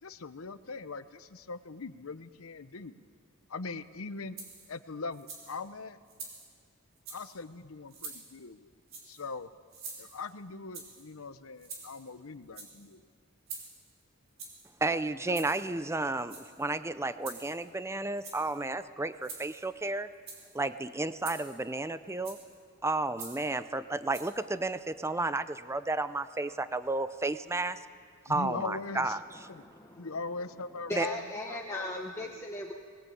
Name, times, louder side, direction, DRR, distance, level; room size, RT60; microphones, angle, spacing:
voice 1, 0.0-3.0 3.5-4.4 4.7-6.0 7.1-8.7 9.0-9.5 10.0-13.1 28.3-29.2 29.5-29.6 29.9-31.2 31.5-32.5, left 3 dB, 80° left, 12 dB, 0.9 m, -41 dB
sound 1, 4.4-4.7 5.1-5.6 6.1-6.5 7.0-7.4 7.9-8.3 8.9-9.3 9.7-10.3 10.7-11.1 11.6-12.1 12.4-12.9 13.5-13.9 14.4-14.7 15.3-15.7 16.2-16.7 17.2-17.7 18.1-18.6 19.2-19.6 20.1-20.5 21.2-21.6 22.2-22.6 23.2-23.5 24.1-24.3, right 4 dB, 65° right, 4.7 m, -45 dB
voice 2, 14.8-20.1 20.5-22.4 22.8-27.8 28.3-29.2 30.9-31.1, right 2 dB, 15° right, 13 dB, 0.6 m, -32 dB
voice 3, 29.6-30.1 30.9-32.7, left 2 dB, 15° left, 0 dB, 1.2 m, -37 dB
21.0 x 19.0 x 8.6 m, 2.1 s
head